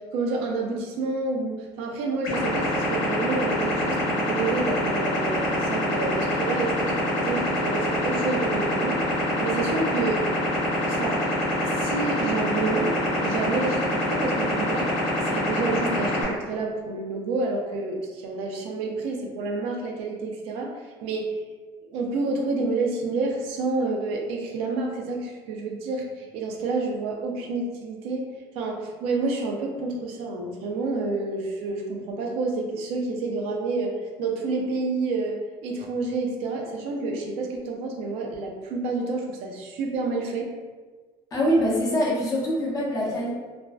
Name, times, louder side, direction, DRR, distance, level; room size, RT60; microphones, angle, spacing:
voice 1, 0.1-9.0 9.4-10.2 10.9-11.2 11.6-12.9 13.2-14.9 15.3-20.7 21.0-21.3 21.9-28.2 28.5-40.5, right 3 dB, 70° right, 1 dB, 0.5 m, -29 dB
sound 1, 2.2-16.2, left 1 dB, 80° left, 0.9 m, -25 dB
voice 2, 41.3-43.3, equal, 35° left, -5 dB, 0.7 m, -24 dB
2.4 x 2.1 x 2.3 m, 1.4 s
cardioid pair, 140°, 10 cm